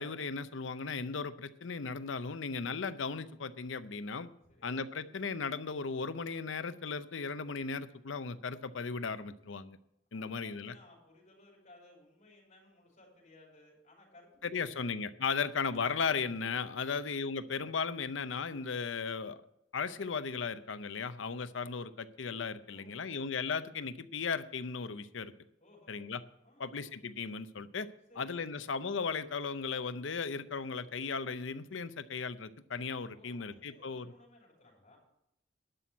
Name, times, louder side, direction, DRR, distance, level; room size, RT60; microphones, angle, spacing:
voice 1, 0.0-4.3 4.6-9.8 10.1-10.7 14.4-19.4 19.7-25.3 25.9-26.2 26.6-27.9 28.2-34.0, left 5 dB, 80° left, 13 dB, 0.7 m, -36 dB
voice 2, 4.4-4.8 10.1-14.9 22.6-23.3 25.6-26.0 26.4-26.7 28.1-28.7 33.1-35.0, left 2 dB, 40° left, -1 dB, 5.6 m, -60 dB
11.5 x 6.1 x 8.2 m, 0.78 s
head